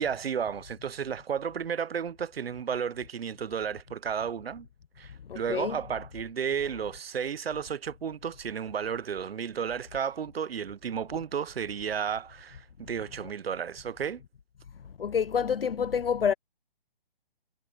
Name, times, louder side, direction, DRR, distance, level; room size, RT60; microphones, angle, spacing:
voice 1, 0.0-4.7 5.0-14.2, right 7 dB, 80° right, 0.9 m, -33 dB
voice 2, 5.3-5.8 15.0-16.3, left 7 dB, 70° left, 0.9 m, -27 dB
hypercardioid pair, 175°, 30 cm